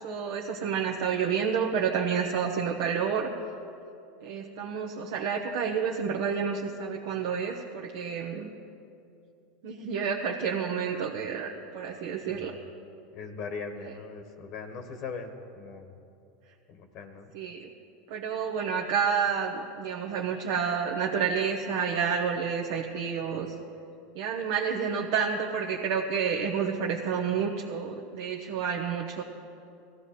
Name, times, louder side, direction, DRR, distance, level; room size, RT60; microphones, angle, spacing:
voice 1, 0.0-3.3 4.2-8.5 9.6-12.5 17.3-17.7 18.1-23.5 24.1-29.2, right 6 dB, 65° right, 0 dB, 1.0 m, -29 dB
voice 2, 12.3-12.7 13.1-16.0 16.7-17.3, left 4 dB, 55° left, 7 dB, 1.3 m, -40 dB
18.0 x 14.5 x 4.3 m, 2.7 s
hypercardioid pair, 100°, 0 cm